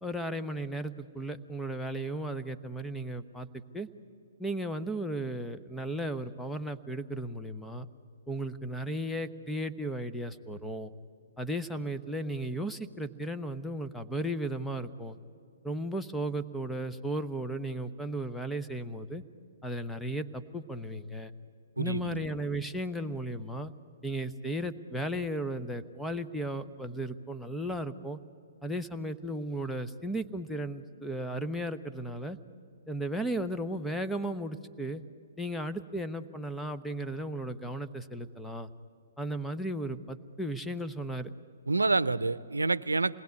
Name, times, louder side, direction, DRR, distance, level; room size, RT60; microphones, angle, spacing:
voice 1, 0.0-3.9 4.4-7.9 8.3-10.9 11.4-15.2 15.6-19.2 19.6-21.3 21.8-23.7 24.0-28.2 28.6-32.4 32.9-35.0 35.4-38.7 39.2-41.3, right 1 dB, 5° left, 9 dB, 1.0 m, -35 dB
voice 2, 21.8-22.2 41.7-43.2, right 3 dB, 85° right, 18 dB, 0.7 m, -28 dB
27.5 x 20.0 x 9.5 m, 2.4 s
figure-of-eight pair, 125°, 0 cm